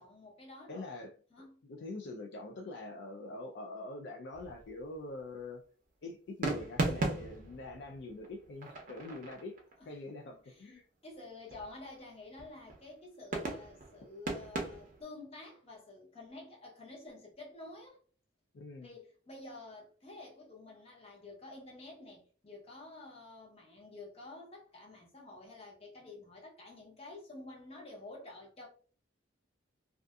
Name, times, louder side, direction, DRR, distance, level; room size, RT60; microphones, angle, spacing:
voice 1, 0.0-0.9 1.3-1.6 9.8-10.6 11.0-18.0 18.8-28.7, left 2 dB, 30° left, 0.7 m, -50 dB
voice 2, 0.7-1.1 1.6-5.6 6.0-9.6 9.9-10.9 18.5-18.9, left 2 dB, 60° left, 0.4 m, -44 dB
sound 1, 4.3-4.9 6.4-9.7 11.5-12.0 12.4-12.9 13.3-15.0, right 2 dB, 45° right, 0.6 m, -37 dB
2.6 x 2.4 x 2.3 m
head